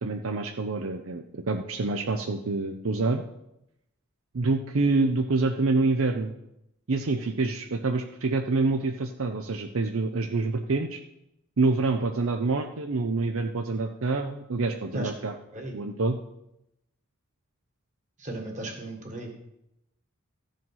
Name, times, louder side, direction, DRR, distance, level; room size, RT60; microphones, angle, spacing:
voice 1, 0.0-3.2 4.3-6.3 6.9-11.0 11.6-15.3 15.7-16.2, right 3 dB, 70° right, 5 dB, 0.6 m, -27 dB
voice 2, 18.2-19.4, right 1 dB, 35° right, 2 dB, 1.8 m, -36 dB
14.0 x 5.3 x 5.5 m, 0.84 s
head